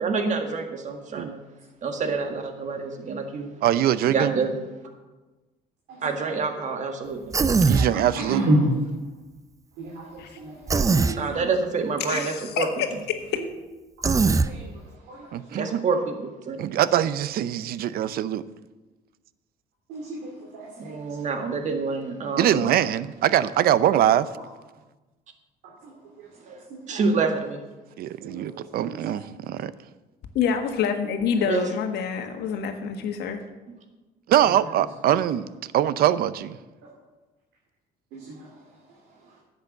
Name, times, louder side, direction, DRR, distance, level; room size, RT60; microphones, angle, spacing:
voice 1, 0.0-1.4 1.8-3.6 4.1-4.6 6.0-7.3 11.2-12.7 15.5-16.8 20.8-22.8 26.9-27.6 31.4-31.7, right 4 dB, 45° right, 5 dB, 1.8 m, -27 dB
voice 2, 3.6-4.3 7.7-8.4 15.3-15.8 16.6-18.4 22.4-24.3 28.0-29.2 29.5-29.7 34.3-35.5 35.7-36.6, right 11 dB, 65° right, 16 dB, 0.6 m, -22 dB
Human voice, 7.3-7.9 10.7-11.2 14.0-14.5, right 4 dB, 20° right, 0.5 m, -20 dB
voice 3, 7.7-8.7 9.7-11.4 13.4-13.5 14.3-15.7 19.9-21.2 24.4-24.5 25.6-27.0 28.2-29.1 34.4-34.8 35.1-35.2 36.8-36.9 38.1-39.4, right 1 dB, 85° right, -2 dB, 2.6 m, -32 dB
voice 4, 12.1-12.9 13.3-13.4 30.3-33.4, left 7 dB, 75° left, 6 dB, 1.5 m, -26 dB
10.5 x 8.0 x 6.7 m, 1.2 s
cardioid pair, 110°, 17 cm